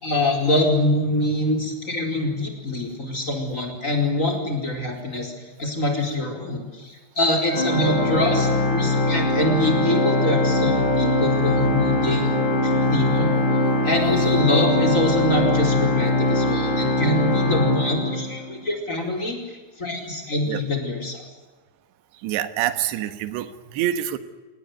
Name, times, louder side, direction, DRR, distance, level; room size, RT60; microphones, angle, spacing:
voice 1, 0.0-5.3 5.6-12.3 12.6-13.4 13.8-21.2, left 1 dB, 15° left, 2 dB, 4.7 m, -25 dB
Organ, 7.5-18.6, left 2 dB, 45° left, 5.7 m, -21 dB
voice 2, 22.2-24.2, right 11 dB, 75° right, 11 dB, 3.5 m, -26 dB
28.0 x 19.0 x 9.5 m, 1.3 s
omnidirectional pair, 5.2 m